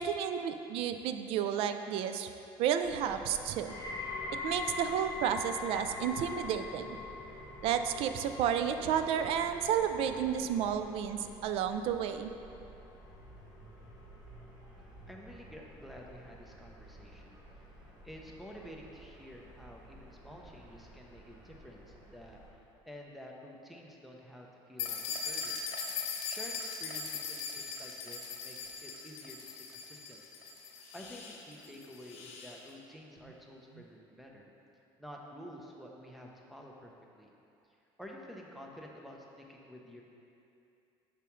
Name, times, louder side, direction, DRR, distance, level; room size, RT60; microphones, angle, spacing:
voice 1, 0.0-2.3 2.6-3.8 4.4-7.0 7.6-12.3, right 8 dB, 70° right, 8 dB, 0.4 m, -31 dB
sound 1, 2.8-22.5, right 1 dB, 40° right, 1.5 m, -53 dB
sound 2, 3.6-14.8 15.1-15.6 16.3-16.4, left 4 dB, 55° left, 1.0 m, -44 dB
voice 2, 15.1-17.4 18.0-22.6 22.9-25.6 26.0-30.2 30.6-34.5 35.0-37.3 38.0-40.0, equal, ahead, -1 dB, 0.6 m, -50 dB
sound 3, 24.8-32.6, left 5 dB, 80° left, 0.8 m, -40 dB
6.8 x 6.0 x 3.1 m, 2.7 s
cardioid pair, 140°, 10 cm